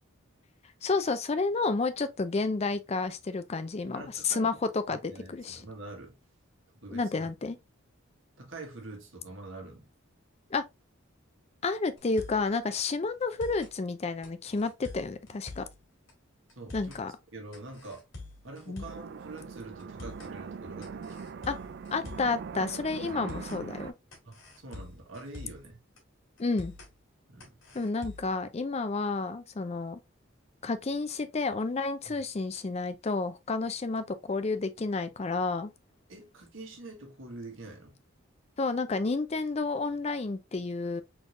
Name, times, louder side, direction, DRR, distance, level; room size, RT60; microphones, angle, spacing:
voice 1, 0.8-5.6 6.9-7.6 10.5-10.6 11.6-15.7 16.7-17.1 18.7-18.8 21.5-21.6 21.9-23.9 26.4-26.7 27.7-30.0 30.6-35.7 38.6-41.0, left 3 dB, 30° left, 0.4 m, -30 dB
voice 2, 3.9-4.5 5.1-6.1 6.8-7.1 8.4-9.9 16.5-17.0 17.3-18.0 18.4-21.0 23.0-23.2 24.2-25.8 27.3-27.6 32.1-32.2 36.1-38.0, right 2 dB, 70° right, 1.5 m, -45 dB
sound 1, 12.0-12.5 12.8-12.9 13.2-13.7 14.2-15.8 16.1-16.2 16.5-17.0 17.5-19.1 19.4-19.5 19.8-20.3 20.8-22.4 22.7-22.8 23.1-23.6 24.1-25.7 26.0-26.1 26.4-26.9 27.4-28.4, left 2 dB, 70° left, 2.2 m, -46 dB
sound 2, 18.8-23.9, right 5 dB, 50° right, 0.3 m, -41 dB
4.2 x 3.4 x 2.5 m
head